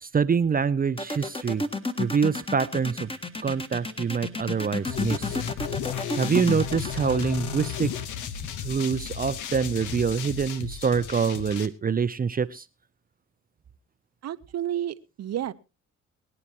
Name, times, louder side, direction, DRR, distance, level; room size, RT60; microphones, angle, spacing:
voice 1, 0.0-1.6 2.0-3.1 3.4-5.4 6.2-7.9 8.6-12.6, right 6 dB, 30° right, 14 dB, 0.6 m, -25 dB
sound 1, 1.0-8.7, left 2 dB, 20° left, 1.5 m, -32 dB
sound 2, 4.9-11.7, left 8 dB, 80° left, 1.1 m, -33 dB
voice 2, 14.2-15.5, right 11 dB, 55° right, 14 dB, 0.8 m, -31 dB
23.0 x 9.9 x 2.9 m, 0.28 s
cardioid pair, 90°, 30 cm